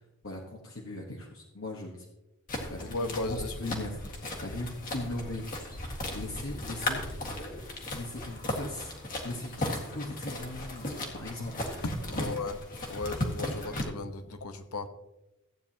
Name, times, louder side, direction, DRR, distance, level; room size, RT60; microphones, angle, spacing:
voice 1, 0.2-2.0 2.7-2.9 3.3-4.0 4.4-5.5 6.1-7.7 7.9-8.9 9.2-11.6 12.2-12.3, left 2 dB, 60° left, -1 dB, 1.3 m, -39 dB
sound 1, 2.5-13.8, left 1 dB, 40° left, 1.8 m, -36 dB
voice 2, 2.8-3.5 11.8-12.6 12.9-14.9, left 2 dB, 85° left, 8 dB, 1.1 m, -35 dB
15.5 x 9.1 x 2.9 m, 0.91 s
head